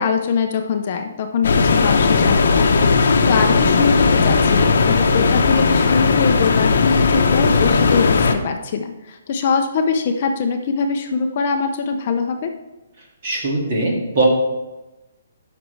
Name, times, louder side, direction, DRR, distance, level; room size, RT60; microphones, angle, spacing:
voice 1, 0.0-2.7 3.2-12.5, left 5 dB, 35° left, 5 dB, 0.5 m, -22 dB
sound 1, 1.4-8.3, left 4 dB, 65° left, 0.8 m, -16 dB
voice 2, 13.2-14.2, right 2 dB, 35° right, -1 dB, 2.0 m, -21 dB
11.5 x 6.0 x 3.2 m, 1.1 s
hypercardioid pair, 175°, 0 cm